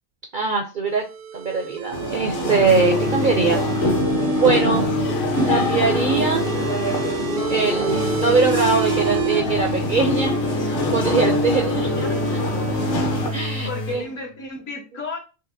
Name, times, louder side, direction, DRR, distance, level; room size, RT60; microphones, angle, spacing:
voice 1, 0.3-1.0 1.3-3.6 4.4-4.9 5.5-6.4 7.5-12.1 12.3-12.4 13.3-14.0, right 4 dB, 60° right, 2 dB, 0.5 m, -22 dB
sound 1, 0.9-4.8 5.3-9.4, right 9 dB, 85° right, 1.0 m, -30 dB
sound 2, 1.9-13.3, left 2 dB, 50° left, 0.9 m, -24 dB
sound 3, 2.6-4.3 4.7-7.2 7.9-14.3, equal, 90° left, 1.3 m, -30 dB
voice 2, 12.0-12.8 13.2-15.2, left 4 dB, 75° left, -1 dB, 1.7 m, -35 dB
5.5 x 2.7 x 2.6 m, 0.32 s
omnidirectional pair, 1.4 m